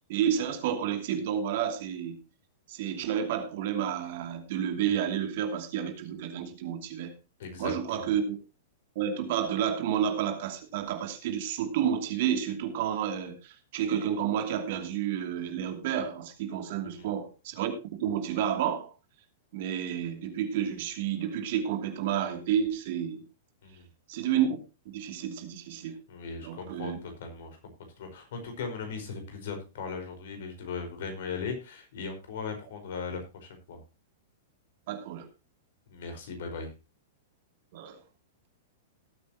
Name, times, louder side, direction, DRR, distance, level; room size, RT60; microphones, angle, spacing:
voice 1, 0.1-2.2 2.7-7.1 7.6-8.4 8.9-18.9 19.5-23.2 24.1-24.5 24.9-26.0 26.4-27.0 34.9-35.3 37.7-38.0, right 9 dB, 60° right, 6 dB, 2.7 m, -30 dB
voice 2, 7.4-8.1 16.8-17.1 23.6-23.9 26.1-27.6 28.0-33.8 35.9-36.7, left 5 dB, 65° left, 5 dB, 5.0 m, -38 dB
18.5 x 8.6 x 2.9 m, 0.29 s
hypercardioid pair, 110°, 0 cm